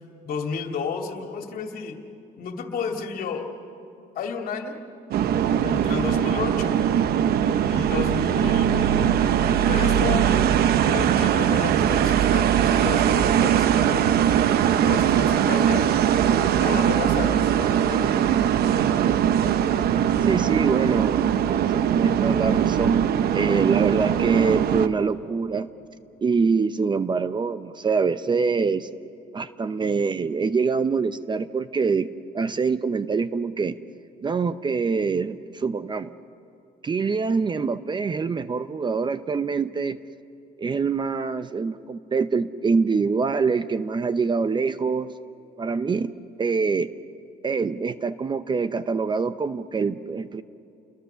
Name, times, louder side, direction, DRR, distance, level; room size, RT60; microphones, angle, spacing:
voice 1, 0.2-2.0 2.4-3.5 4.1-4.8 5.6-6.8 7.7-9.1 9.4-10.4 10.8-14.2 14.7-15.9 16.4-18.3, left 5 dB, 60° left, 3 dB, 2.6 m, -32 dB
sound 1, 5.1-24.9, right 9 dB, 65° right, 1.0 m, -21 dB
voice 2, 20.2-23.1 23.3-25.7 26.2-28.9 29.3-32.1 32.3-33.7 34.2-36.1 36.8-40.0 40.6-45.1 45.6-46.1 46.4-46.9 47.4-50.4, right 5 dB, 25° right, 13 dB, 0.7 m, -25 dB
30.0 x 21.5 x 6.9 m, 2.7 s
cardioid pair, 110°, 17 cm